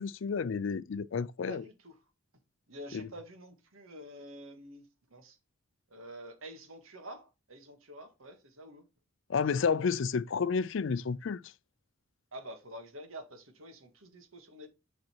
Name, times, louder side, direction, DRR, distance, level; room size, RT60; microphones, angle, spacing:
voice 1, 0.0-1.6 2.9-3.1 9.3-11.5, left 5 dB, 65° left, 0.4 m, -31 dB
voice 2, 1.5-1.9 2.7-5.4 5.9-8.9 12.3-14.7, right 1 dB, 80° right, 1.9 m, -48 dB
7.7 x 4.2 x 4.4 m
head